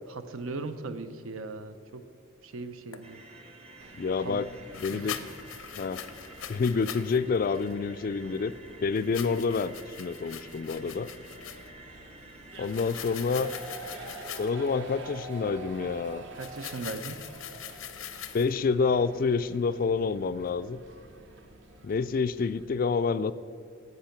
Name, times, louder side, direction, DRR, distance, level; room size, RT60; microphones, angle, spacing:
voice 1, 0.1-2.0 2.4-3.2 4.2-4.5 4.9-5.3 16.4-17.2, right 3 dB, 85° right, 10 dB, 0.7 m, -38 dB
sound 1, 2.9-3.0 4.7-7.2 7.5-7.7 8.9-11.7 12.5-14.7 16.3-18.6, left 10 dB, 85° left, 0.6 m, -42 dB
sound 2, 3.0-14.2, right 2 dB, 30° right, 0.9 m, -51 dB
sound 3, 3.8-22.7, right 2 dB, 60° right, 1.0 m, -48 dB
voice 2, 4.0-4.5 4.8-5.2 5.8-6.0 6.5-8.5 8.8-11.1 12.6-13.5 14.4-16.2 18.3-20.8 21.8-23.3, left 5 dB, 45° left, 14 dB, 0.3 m, -28 dB
10.5 x 8.2 x 5.9 m, 2.4 s
head